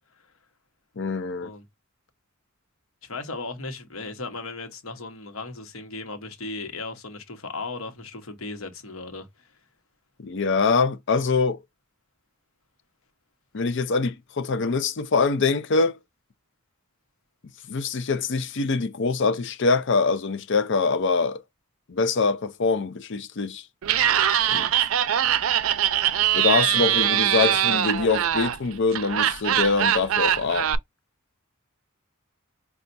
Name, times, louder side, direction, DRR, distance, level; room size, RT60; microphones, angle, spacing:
voice 1, 1.0-1.5 10.2-11.6 13.5-16.0 17.7-21.4 21.9-23.6 24.5-24.7 26.3-30.7, left 4 dB, 60° left, 0.6 m, -24 dB
voice 2, 3.0-9.3 26.7-27.2 27.5-27.9, left 3 dB, 75° left, 1.1 m, -36 dB
Laughter, 23.8-30.8, right 10 dB, 75° right, 0.4 m, -22 dB
5.5 x 2.4 x 2.6 m
head